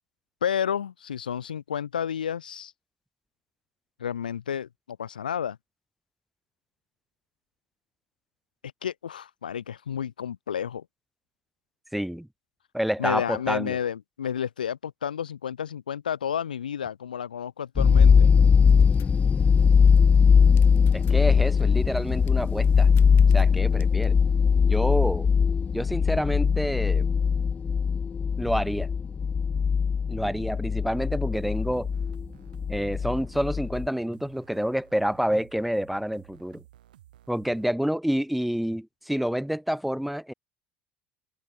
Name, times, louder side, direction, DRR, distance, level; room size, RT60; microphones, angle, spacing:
voice 1, 0.4-2.7 4.0-5.6 8.8-10.8 13.0-18.3, left 8 dB, 90° left, 1.8 m, -31 dB
voice 2, 11.9-12.3 12.7-13.8 20.9-22.9 23.3-24.2 24.7-25.3 25.7-27.1 28.4-28.9 30.1-31.9 32.7-36.6 37.3-40.3, equal, ahead, 0.8 m, -28 dB
sound 1, 17.8-33.9, left 6 dB, 30° left, 0.6 m, -21 dB
sound 2, 18.6-24.2, left 13 dB, 55° left, 1.5 m, -43 dB
sound 3, 31.3-37.7, right 13 dB, 80° right, 3.6 m, -54 dB
open air
hypercardioid pair, 70°, 5 cm